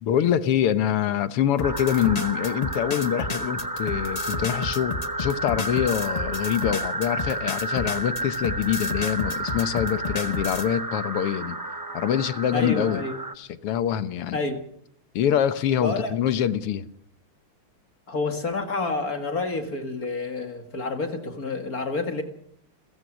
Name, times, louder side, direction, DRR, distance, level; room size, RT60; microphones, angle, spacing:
voice 1, 0.0-11.6 11.9-13.0 13.4-14.4 15.1-16.9, left 10 dB, 85° left, 13 dB, 2.0 m, -25 dB
sound 1, 1.6-10.7, left 4 dB, 60° left, 0.4 m, -32 dB
sound 2, 1.6-13.3, right 1 dB, 25° right, 0.4 m, -31 dB
voice 2, 12.5-13.1 14.3-14.6 15.8-16.1 18.1-22.2, left 3 dB, 40° left, 7 dB, 2.3 m, -28 dB
29.5 x 15.0 x 6.3 m, 0.67 s
omnidirectional pair, 2.4 m